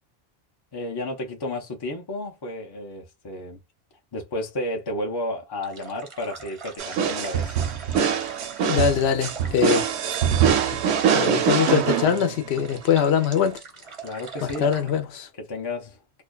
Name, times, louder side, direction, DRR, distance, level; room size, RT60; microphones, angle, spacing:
voice 1, 0.7-3.6 4.1-7.6 14.0-14.7 15.4-16.0, left 1 dB, 35° left, 0.4 m, -32 dB
sound 1, 5.6-14.9, right 5 dB, 40° right, 0.5 m, -41 dB
sound 2, 6.8-12.6, right 8 dB, 85° right, 0.9 m, -23 dB
voice 2, 8.7-9.8 10.5-10.8 11.1-13.6 14.4-15.3, left 7 dB, 85° left, 0.9 m, -23 dB
2.5 x 2.2 x 2.2 m
omnidirectional pair, 1.1 m